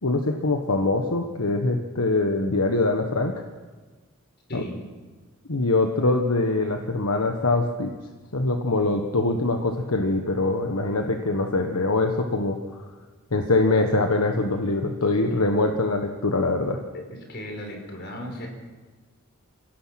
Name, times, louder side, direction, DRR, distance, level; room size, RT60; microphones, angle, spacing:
voice 1, 0.0-3.3 4.5-4.6 5.5-7.9 8.3-12.8 13.3-16.8, left 2 dB, 85° left, 4 dB, 1.4 m, -23 dB
voice 2, 4.5-4.8 16.9-18.5, equal, 50° left, 3 dB, 4.8 m, -36 dB
27.0 x 17.0 x 5.9 m, 1.3 s
head